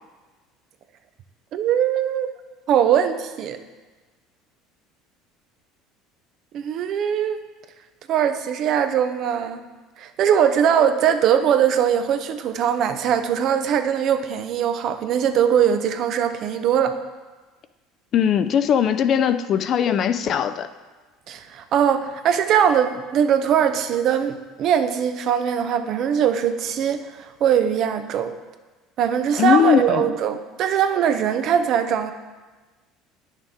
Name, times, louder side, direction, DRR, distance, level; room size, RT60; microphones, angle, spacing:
voice 1, 1.5-2.3 2.7-3.6 6.5-7.4 8.1-9.6 10.0-17.0 21.3-28.4 29.0-32.1, right 8 dB, 55° right, 9 dB, 0.6 m, -21 dB
voice 2, 18.1-20.7 29.4-30.1, left 8 dB, 50° left, 11 dB, 0.4 m, -19 dB
9.4 x 6.4 x 3.7 m, 1.3 s
supercardioid pair, 100°, 0 cm